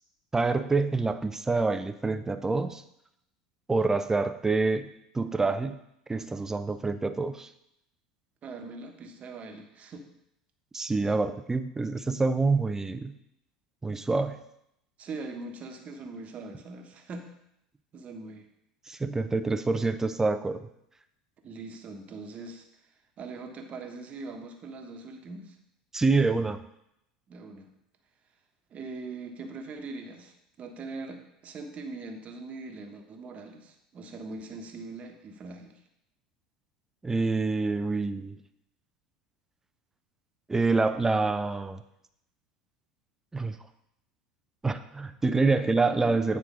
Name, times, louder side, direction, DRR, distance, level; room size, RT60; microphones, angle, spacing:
voice 1, 0.3-2.8 3.7-5.8 6.1-7.5 10.7-13.2 13.8-14.4 18.9-20.7 25.9-26.6 37.0-38.4 40.5-41.8 43.3-43.6 44.6-46.4, right 3 dB, 10° right, 10 dB, 0.5 m, -26 dB
voice 2, 8.4-10.1 15.0-17.3 17.9-18.5 21.4-22.6 23.2-25.6 27.3-27.7 28.7-35.7 46.1-46.2, right 3 dB, 35° right, 4 dB, 1.2 m, -41 dB
9.2 x 4.4 x 5.1 m, 0.79 s
figure-of-eight pair, 75°, 4 cm